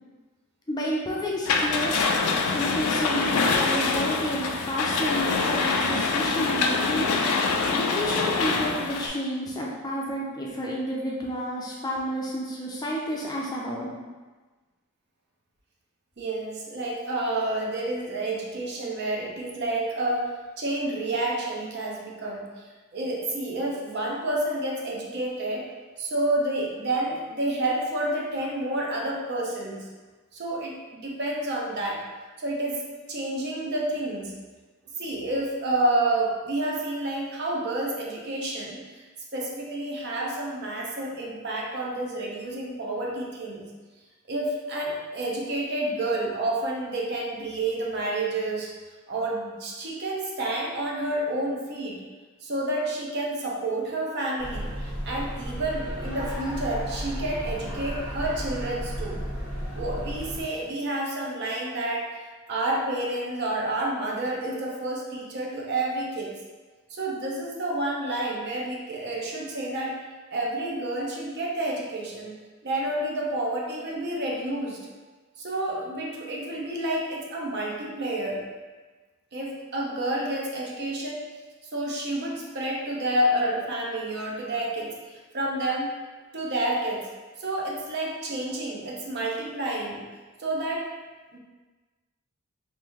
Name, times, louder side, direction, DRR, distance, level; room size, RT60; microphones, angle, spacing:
voice 1, 0.7-2.1 2.5-7.1 7.7-13.9, equal, 20° left, -4 dB, 0.4 m, -30 dB
sound 1, 1.5-9.1, left 4 dB, 80° left, 0.4 m, -25 dB
voice 2, 16.2-20.3 20.6-22.4 22.9-25.7 26.0-29.9 30.3-32.0 32.4-32.8 33.1-34.3 35.0-38.8 39.3-43.6 44.3-48.7 49.1-52.0 52.4-59.2 59.8-62.1 62.5-66.3 66.9-69.9 70.3-72.3 72.6-74.8 75.4-78.4 79.3-81.2 81.7-85.9 86.3-87.0 87.4-90.0 90.4-90.9 91.3-91.4, right 1 dB, 50° right, -2 dB, 0.6 m, -29 dB
sound 2, 54.4-60.4, equal, 20° right, 1.2 m, -33 dB
3.0 x 2.6 x 3.5 m, 1.3 s
head